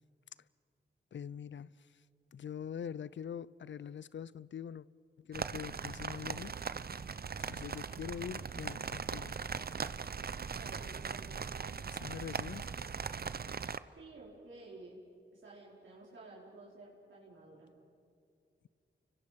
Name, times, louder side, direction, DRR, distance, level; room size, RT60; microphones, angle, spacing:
voice 1, 1.1-1.7 2.3-4.9 5.3-6.5 7.4-9.4 11.9-12.7, left 8 dB, 70° left, 0.6 m, -43 dB
sound 1, 5.3-13.8, right 6 dB, 50° right, 0.8 m, -40 dB
voice 2, 10.6-11.4 14.0-15.0 15.4-17.7, right 2 dB, 80° right, 5.0 m, -52 dB
30.0 x 24.5 x 5.4 m
cardioid pair, 45°, 20 cm